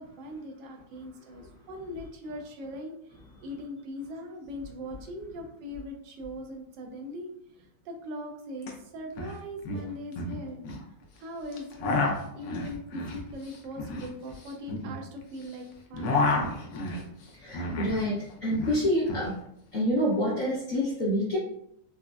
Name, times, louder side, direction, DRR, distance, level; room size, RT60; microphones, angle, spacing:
voice 1, 0.0-2.9 3.4-7.3 7.9-10.6 11.2-12.1 12.4-16.2, left 1 dB, 75° right, 2 dB, 1.3 m, -40 dB
sound 1, 8.6-8.7 9.0-9.3 9.6-10.8 11.5-15.5 15.8-18.0 18.3-19.3, left 2 dB, 75° left, 1.2 m, -31 dB
voice 2, 17.4-19.4 19.7-21.4, equal, 55° left, -9 dB, 1.2 m, -27 dB
4.9 x 2.1 x 2.2 m, 0.75 s
omnidirectional pair, 2.0 m